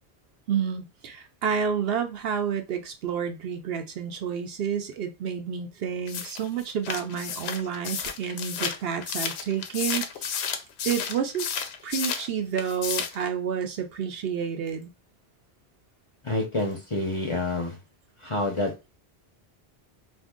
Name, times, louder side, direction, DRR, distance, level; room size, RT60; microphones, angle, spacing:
voice 1, 0.5-10.5 10.8-11.5 11.8-14.9, right 7 dB, 70° right, 0.7 m, -30 dB
sound 1, 6.1-12.3 12.6-13.2, left 7 dB, 75° left, 0.8 m, -32 dB
voice 2, 16.2-17.8 18.2-18.7, left 2 dB, 30° left, 0.7 m, -27 dB
2.6 x 2.6 x 3.6 m
omnidirectional pair, 1.1 m